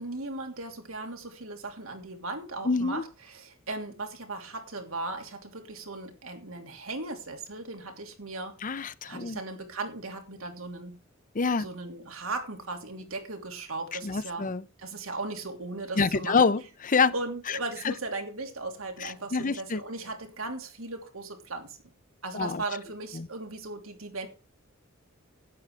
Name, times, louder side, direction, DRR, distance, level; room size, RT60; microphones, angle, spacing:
voice 1, 0.0-8.6 9.0-11.0 11.6-14.5 14.8-16.5 17.1-21.9 22.2-24.3, right 3 dB, 90° right, 3.0 m, -37 dB
voice 2, 2.6-3.0 8.6-9.4 11.3-11.7 13.9-14.6 16.0-17.1 17.5-17.6 17.8-17.9 19.0-19.8 22.3-22.6 23.1-23.3, left 4 dB, 40° left, 0.6 m, -26 dB
12.0 x 9.7 x 4.8 m
head